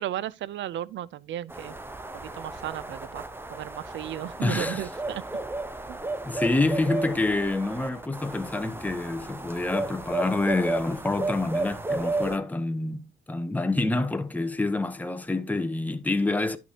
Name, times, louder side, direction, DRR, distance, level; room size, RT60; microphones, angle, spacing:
voice 1, 0.0-1.8 2.1-3.2 3.5-5.2 5.9-6.0, right 12 dB, 70° right, 0.5 m, -35 dB
sound 1, 1.5-12.4, right 2 dB, 10° right, 0.9 m, -33 dB
voice 2, 4.4-4.8 6.2-16.6, left 2 dB, 10° left, 0.9 m, -27 dB
11.0 x 6.0 x 2.9 m
cardioid pair, 90°, 20 cm